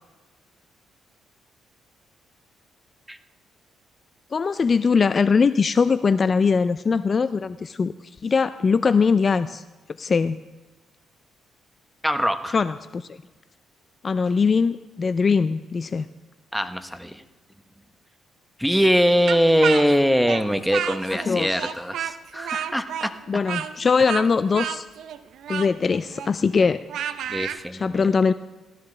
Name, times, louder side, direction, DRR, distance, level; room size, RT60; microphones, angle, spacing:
voice 1, 4.3-7.9 8.2-9.6 10.0-10.4 12.5-13.2 14.0-16.1 21.3-21.7 23.3-24.9 25.5-26.8 27.7-28.3, left 5 dB, 40° left, 13 dB, 0.4 m, -21 dB
voice 2, 12.0-12.6 16.5-17.2 18.6-23.1 27.3-28.1, equal, ahead, 9 dB, 0.9 m, -22 dB
Speech, 19.3-21.3 21.6-27.6, right 9 dB, 75° right, 0.6 m, -31 dB
17.5 x 13.0 x 3.3 m, 1.2 s
cardioid pair, 90°, 0 cm